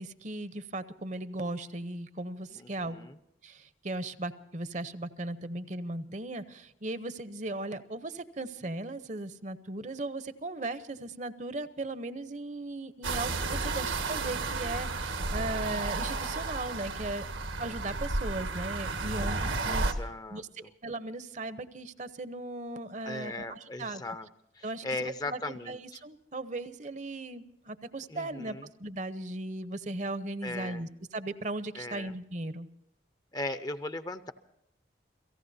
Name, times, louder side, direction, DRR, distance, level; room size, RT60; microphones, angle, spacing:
voice 1, 0.0-3.0 3.4-17.3 17.6-19.8 20.3-24.0 24.6-32.7, right 2 dB, 40° right, 13 dB, 0.8 m, -37 dB
voice 2, 2.6-3.1 19.7-20.4 23.0-24.3 24.6-25.8 28.1-28.6 30.4-30.8 31.8-32.1 33.3-34.3, left 2 dB, 20° left, 11 dB, 0.6 m, -38 dB
sound 1, 13.0-19.9, right 3 dB, 90° right, 1.7 m, -32 dB
29.5 x 18.0 x 2.7 m, 0.82 s
head